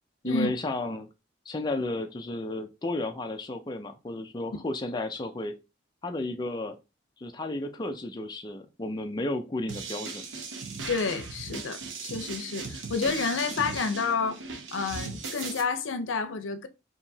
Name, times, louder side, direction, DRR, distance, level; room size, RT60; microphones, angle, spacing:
voice 1, 0.2-1.1 1.5-5.6 6.0-6.8 7.2-10.3, left 2 dB, 20° left, 0.4 m, -33 dB
sound 1, 9.7-15.6, right 4 dB, 80° right, 0.9 m, -38 dB
voice 2, 10.9-14.4 14.7-16.7, left 4 dB, 90° left, 0.6 m, -30 dB
4.7 x 2.8 x 2.7 m
head